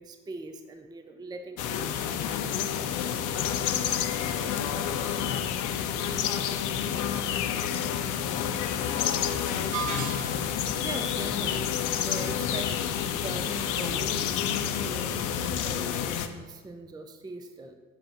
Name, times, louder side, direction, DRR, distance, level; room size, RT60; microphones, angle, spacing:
voice 1, 0.0-2.7 10.8-17.7, right 2 dB, 10° right, 7 dB, 0.6 m, -41 dB
sound 1, 1.6-16.3, left 9 dB, 50° left, 0.7 m, -29 dB
voice 2, 3.4-9.9, right 1 dB, 70° right, -3 dB, 2.3 m, -49 dB
sound 2, 9.7-10.7, right 6 dB, 50° right, 0.8 m, -34 dB
7.5 x 6.2 x 4.2 m, 1.3 s
figure-of-eight pair, 50°, 40 cm